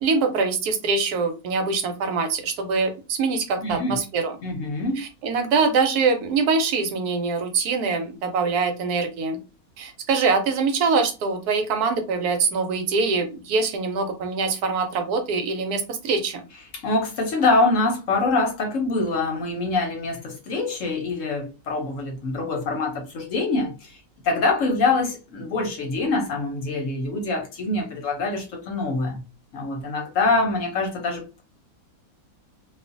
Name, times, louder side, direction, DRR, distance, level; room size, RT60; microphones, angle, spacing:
voice 1, 0.0-4.4 5.0-9.4 9.8-16.4, right 4 dB, 80° right, 1.1 m, -24 dB
voice 2, 3.6-4.0 4.4-5.0 16.7-24.0 24.2-29.2 29.5-31.4, left 3 dB, 65° left, 0.9 m, -24 dB
2.5 x 2.4 x 2.5 m
omnidirectional pair, 1.6 m